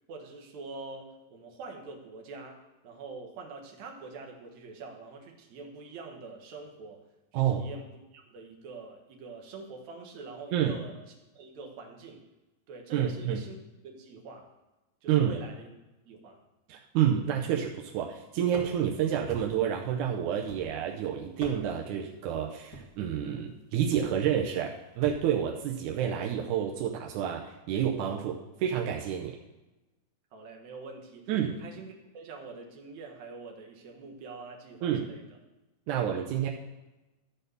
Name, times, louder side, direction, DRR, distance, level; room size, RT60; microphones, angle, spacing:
voice 1, 0.1-2.6 2.8-7.0 7.3-10.9 11.3-12.2 12.7-13.6 13.8-14.5 15.0-15.7 16.0-16.4 30.3-35.2 35.9-36.1, right 4 dB, 60° right, 1 dB, 2.2 m, -45 dB
voice 2, 7.3-7.7 10.5-10.8 12.9-13.4 15.1-15.3 16.7-29.4 31.3-31.6 34.8-35.1 35.9-36.5, right 9 dB, 80° right, 0 dB, 1.8 m, -29 dB
sound 1, 18.5-18.9 19.3-19.8 20.5-20.9 21.3-21.9 22.7-23.0 23.9-24.2 25.0-25.3, right 1 dB, 25° left, 0.4 m, -44 dB
13.0 x 4.4 x 6.7 m, 1.0 s
omnidirectional pair, 4.3 m